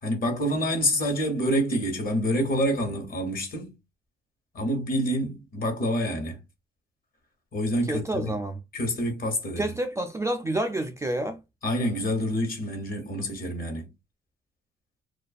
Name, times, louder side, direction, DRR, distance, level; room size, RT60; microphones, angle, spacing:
voice 1, 0.0-3.7 4.5-6.4 7.5-8.3 8.7-9.7 11.6-13.9, equal, 45° left, 1.1 m, -27 dB
voice 2, 7.9-8.5 9.6-11.4, right 1 dB, 15° right, 0.3 m, -28 dB
2.4 x 2.2 x 2.4 m
cardioid pair, 90°, 20 cm